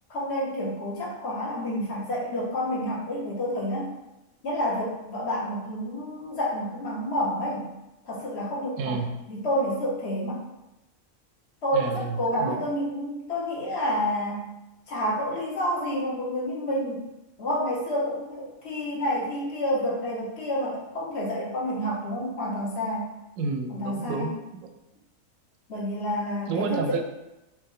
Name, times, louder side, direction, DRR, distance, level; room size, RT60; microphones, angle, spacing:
voice 1, 0.1-3.9 4.4-7.7 8.0-9.0 9.3-10.4 11.6-14.5 14.9-17.1 17.4-23.1 23.7-24.3 25.7-27.0, equal, 55° left, -4 dB, 1.2 m, -29 dB
voice 2, 8.8-9.2 11.7-12.7 23.4-24.7 26.5-27.1, right 4 dB, 85° right, 6 dB, 1.0 m, -30 dB
4.3 x 3.0 x 3.7 m, 0.98 s
omnidirectional pair, 1.4 m